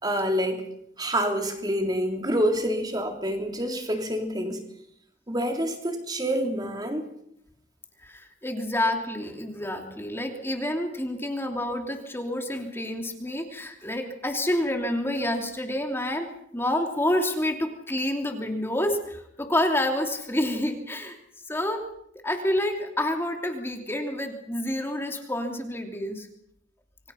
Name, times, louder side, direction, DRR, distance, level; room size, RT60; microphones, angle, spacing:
voice 1, 0.0-0.6 1.0-4.7 5.3-7.0, equal, 20° right, 4 dB, 3.6 m, -27 dB
voice 2, 8.0-21.2 21.5-21.8 22.2-26.3, left 1 dB, 15° left, 4 dB, 2.9 m, -28 dB
27.5 x 24.5 x 5.8 m, 0.73 s
head